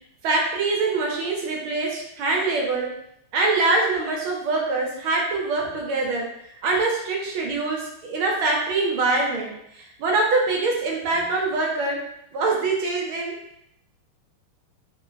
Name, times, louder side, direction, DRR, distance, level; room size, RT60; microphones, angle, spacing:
voice 1, 0.2-2.9 3.3-6.3 6.6-12.0 12.3-13.3, right 3 dB, 75° right, -1 dB, 1.5 m, -24 dB
3.8 x 2.0 x 2.4 m, 0.77 s
omnidirectional pair, 2.4 m